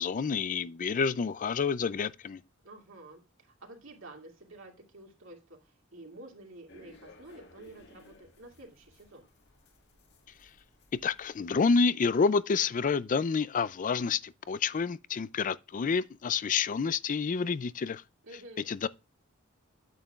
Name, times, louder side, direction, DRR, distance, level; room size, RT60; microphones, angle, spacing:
voice 1, 0.0-2.4 11.0-18.0 18.7-18.9, left 5 dB, 40° left, 0.4 m, -28 dB
voice 2, 2.6-9.3 18.2-18.7, right 2 dB, 65° right, 2.4 m, -50 dB
sound 1, 6.7-11.8, left 2 dB, 55° left, 1.5 m, -58 dB
9.1 x 8.9 x 2.4 m
head